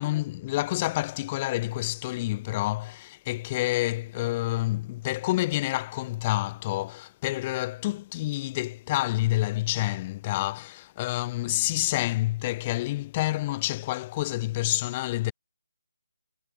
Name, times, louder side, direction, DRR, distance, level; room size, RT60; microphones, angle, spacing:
voice 1, 0.0-15.3, left 17 dB, 25° left, 1.0 m, -28 dB
figure-of-eight pair, 155°, 0 cm